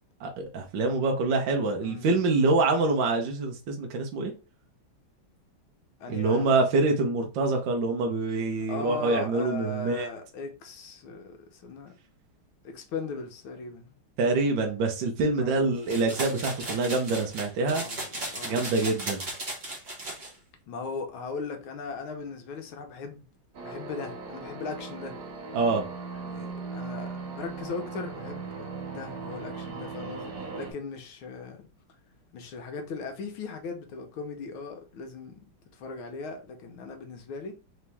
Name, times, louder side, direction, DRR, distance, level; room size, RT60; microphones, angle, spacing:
voice 1, 0.2-4.3 6.1-10.1 14.2-17.8 18.4-19.3 25.5-25.8, right 3 dB, 70° right, 1.4 m, -25 dB
voice 2, 1.8-2.2 6.0-6.5 8.7-11.9 12.6-13.9 15.4-15.7 17.6-18.6 20.7-23.3 23.6-25.1 26.2-31.7 32.3-35.4 35.8-37.5, left 4 dB, 80° left, 1.6 m, -38 dB
sound 1, 15.9-20.3, right 2 dB, 30° right, 1.0 m, -36 dB
sound 2, 23.5-30.7, right 4 dB, 85° right, 2.0 m, -38 dB
4.1 x 2.9 x 3.3 m
omnidirectional pair, 2.3 m